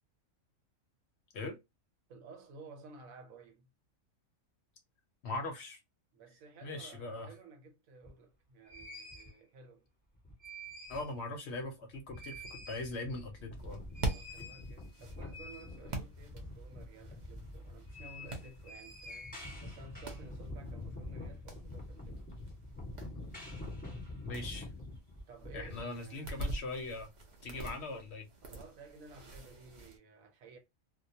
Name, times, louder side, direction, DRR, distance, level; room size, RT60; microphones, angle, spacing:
voice 1, 2.1-3.7 6.1-9.9 14.1-22.3 25.3-26.4 28.4-30.6, right 3 dB, 80° right, 1.1 m, -54 dB
voice 2, 5.2-5.8 6.6-7.3 10.9-13.8 24.2-24.7 25.5-27.1 27.4-28.3, left 2 dB, 60° left, 0.8 m, -40 dB
sound 1, 8.0-8.1 8.6-9.3 10.1-11.2 11.5-11.6 11.9-25.8, left 1 dB, 5° left, 1.0 m, -46 dB
sound 2, 13.6-30.0, right 1 dB, 50° right, 0.6 m, -45 dB
2.3 x 2.2 x 2.6 m
omnidirectional pair, 1.4 m